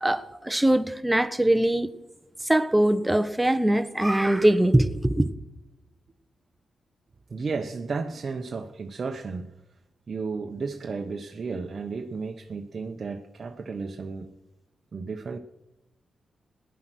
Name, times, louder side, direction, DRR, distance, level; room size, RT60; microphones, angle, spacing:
voice 1, 0.0-1.9 2.5-5.3, right 1 dB, 10° right, 1.2 m, -22 dB
voice 2, 7.3-9.5 10.1-14.3 14.9-15.4, right 4 dB, 55° right, 1.0 m, -33 dB
16.5 x 10.5 x 6.3 m
supercardioid pair, 45°, 0 cm